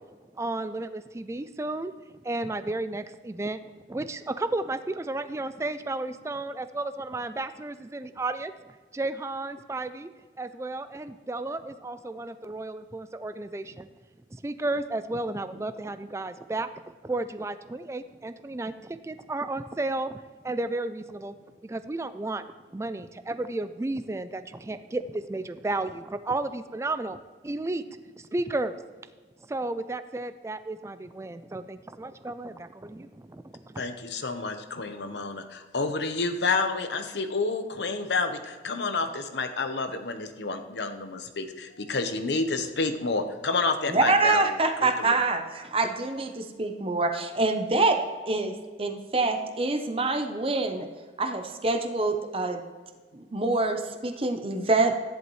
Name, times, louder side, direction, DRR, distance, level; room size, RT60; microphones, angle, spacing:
voice 1, 0.3-1.9 2.2-3.6 3.9-10.1 10.4-13.9 14.3-16.7 17.0-21.4 21.6-22.4 22.7-27.2 27.4-27.8 28.2-28.8 29.5-33.8, right 2 dB, 15° right, 12 dB, 0.3 m, -33 dB
voice 2, 33.8-45.1, left 3 dB, 75° left, 7 dB, 0.9 m, -29 dB
voice 3, 43.9-48.0 48.3-48.5 48.8-50.9 51.2-52.6 53.1-54.9, right 3 dB, 30° right, 6 dB, 0.8 m, -25 dB
14.0 x 10.5 x 3.1 m, 1.4 s
head